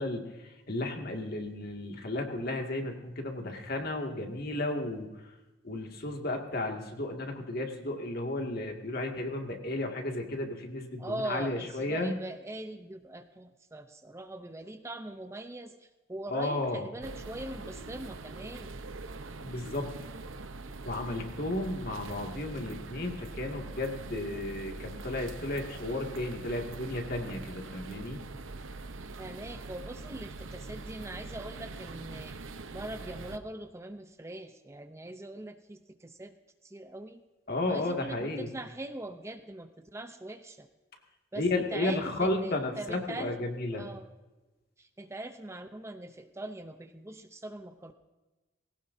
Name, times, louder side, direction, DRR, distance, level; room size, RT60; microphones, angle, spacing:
voice 1, 0.0-5.1 5.6-12.2 16.3-16.8 19.4-19.9 20.8-28.2 37.5-38.5 41.4-43.9, left 2 dB, 50° left, 2 dB, 2.1 m, -33 dB
voice 2, 11.0-18.8 29.1-32.4 32.7-36.3 36.6-37.2 37.7-40.7 41.3-43.4 43.7-44.1 44.8-47.9, right 1 dB, 15° right, 8 dB, 0.6 m, -42 dB
sound 1, 17.0-33.4, right 3 dB, 90° right, 0.9 m, -43 dB
20.0 x 17.5 x 2.7 m, 1.1 s
head